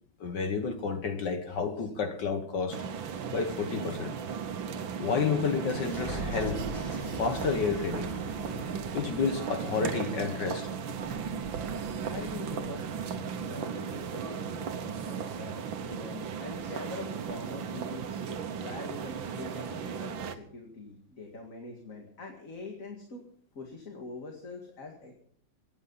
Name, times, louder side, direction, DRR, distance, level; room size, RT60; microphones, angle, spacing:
voice 1, 0.2-2.8 3.3-4.1 5.0-6.6 7.2-8.1 8.9-10.7, left 5 dB, 65° left, 2.0 m, -30 dB
sound 1, 2.7-20.4, right 6 dB, 85° right, 1.8 m, -36 dB
sound 2, 4.6-11.0, left 1 dB, 25° left, 7.8 m, -42 dB
voice 2, 12.0-12.9 13.4-18.2 18.6-23.2 23.5-25.1, left 3 dB, 45° left, 2.5 m, -44 dB
23.5 x 10.0 x 5.6 m
omnidirectional pair, 2.1 m